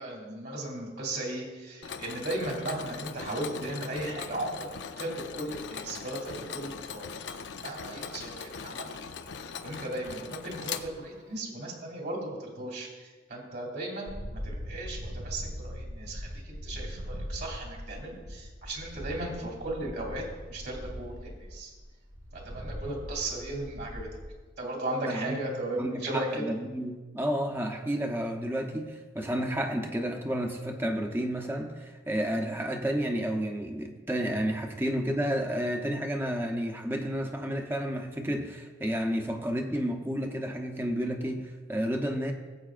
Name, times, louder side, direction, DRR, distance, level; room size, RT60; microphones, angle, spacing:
voice 1, 0.0-4.6 5.0-8.9 9.6-20.2 20.5-21.7 22.3-24.1 24.6-26.4, right 1 dB, 55° right, -1 dB, 2.8 m, -36 dB
Mechanisms, 1.8-11.4, left 6 dB, 65° left, 0.5 m, -40 dB
sound 1, 14.1-24.3, equal, 85° right, 1.8 m, -40 dB
voice 2, 25.0-25.4 25.8-42.3, equal, 10° right, 3 dB, 0.8 m, -31 dB
18.5 x 7.9 x 2.5 m, 1.3 s
head